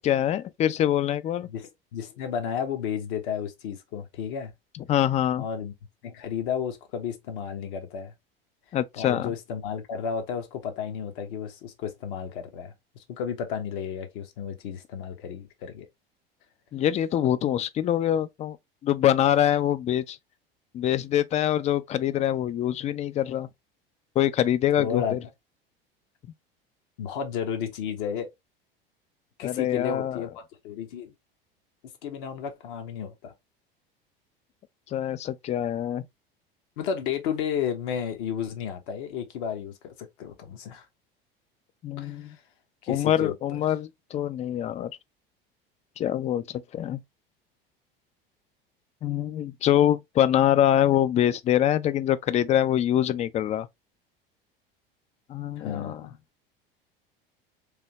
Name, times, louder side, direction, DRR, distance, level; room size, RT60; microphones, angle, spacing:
voice 1, 0.0-1.5 4.9-5.4 8.7-9.3 16.7-18.6 18.8-20.2 20.7-23.5 24.2-25.2 29.4-30.3 34.9-36.1 41.8-42.4 42.9-44.9 46.0-47.0 49.0-53.7 55.3-56.0, left 11 dB, 25° left, 0.3 m, -24 dB
voice 2, 1.5-4.5 5.4-5.7 6.0-8.1 9.0-12.7 13.1-15.9 24.8-25.2 27.0-28.3 29.4-30.3 30.6-31.1 32.0-33.3 36.8-40.9 42.0-42.4 42.8-43.3 55.5-56.2, left 7 dB, 60° left, 1.0 m, -32 dB
3.4 x 2.7 x 2.9 m
figure-of-eight pair, 75°, 29 cm